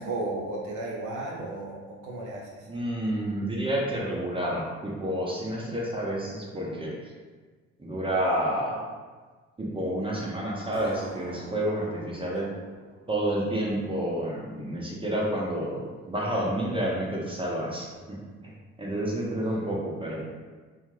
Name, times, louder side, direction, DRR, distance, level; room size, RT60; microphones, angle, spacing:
voice 1, 0.0-2.7, right 2 dB, 45° right, -2 dB, 1.0 m, -34 dB
voice 2, 2.7-6.9 7.8-8.8 9.6-12.5 13.1-18.2 18.4-18.5 18.8-20.2, right 1 dB, 15° right, -4 dB, 0.8 m, -29 dB
sound 1, 10.7-14.0, right 2 dB, 85° right, 0.6 m, -44 dB
3.5 x 2.4 x 3.1 m, 1.4 s
figure-of-eight pair, 50°, 40 cm